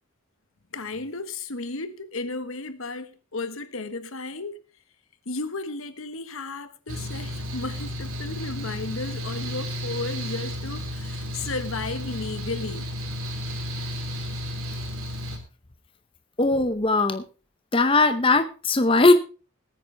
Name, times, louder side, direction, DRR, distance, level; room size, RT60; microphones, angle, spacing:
voice 1, 0.7-4.6 5.2-12.9, left 3 dB, 70° left, 1.4 m, -34 dB
Mechanical fan, 6.9-15.4, left 1 dB, 80° right, 3.2 m, -33 dB
voice 2, 16.4-17.2 17.7-19.1, left 3 dB, 25° left, 0.7 m, -19 dB
20.5 x 9.1 x 3.3 m
head